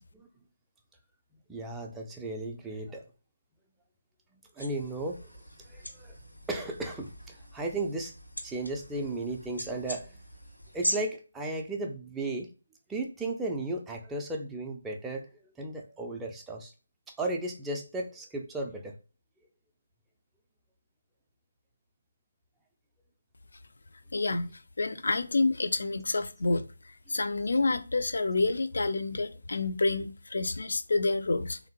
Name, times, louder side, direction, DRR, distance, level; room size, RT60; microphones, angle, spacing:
voice 1, 1.5-3.0 4.6-5.3 5.7-6.2 6.5-8.1 8.4-10.2 10.7-12.5 12.9-15.2 15.6-16.7 17.2-18.9, right 2 dB, 5° right, 0.4 m, -35 dB
sound 1, 4.6-10.9, equal, 85° left, 1.3 m, -40 dB
voice 2, 24.1-24.5 24.8-26.6 27.1-31.6, left 3 dB, 55° left, 0.4 m, -28 dB
3.5 x 2.7 x 2.8 m
figure-of-eight pair, 150°, 0 cm